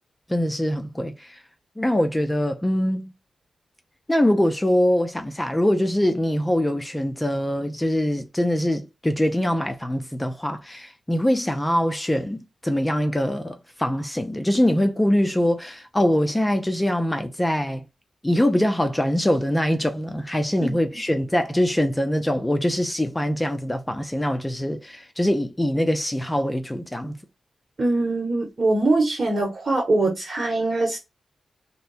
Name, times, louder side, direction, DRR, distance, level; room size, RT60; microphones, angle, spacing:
voice 1, 0.3-1.4 1.8-3.1 4.1-17.8 18.2-27.2, left 1 dB, 15° left, 0.5 m, -23 dB
voice 2, 27.8-31.0, right 2 dB, 40° right, 1.0 m, -22 dB
2.7 x 2.1 x 4.0 m
cardioid pair, 70°, 0 cm